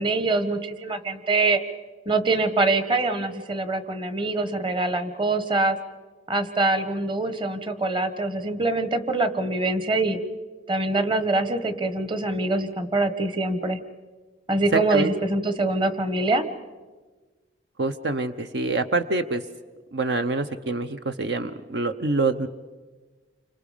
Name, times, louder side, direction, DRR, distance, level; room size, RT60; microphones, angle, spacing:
voice 1, 0.0-1.6 2.0-5.8 6.3-10.2 10.7-13.8 14.5-16.5, right 2 dB, 30° right, 11 dB, 1.3 m, -24 dB
voice 2, 14.7-15.1 17.8-19.5 19.9-22.5, right 3 dB, 65° right, 9 dB, 0.8 m, -26 dB
29.5 x 25.5 x 5.1 m, 1.3 s
head